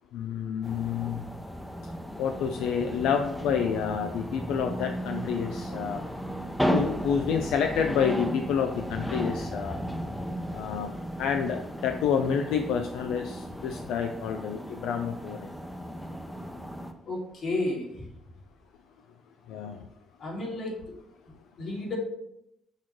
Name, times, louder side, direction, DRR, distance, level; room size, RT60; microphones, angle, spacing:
voice 1, 0.1-1.2 2.2-6.0 6.7-9.8 10.5-10.9 11.2-15.5 19.5-19.8, left 7 dB, 90° left, 5 dB, 0.4 m, -29 dB
sound 1, 0.6-16.9, equal, 5° left, 0.7 m, -35 dB
voice 2, 17.0-18.1 20.2-20.7 21.6-21.9, left 2 dB, 65° left, -3 dB, 2.6 m, -32 dB
6.5 x 3.2 x 5.9 m, 0.80 s
cardioid pair, 90°, 0 cm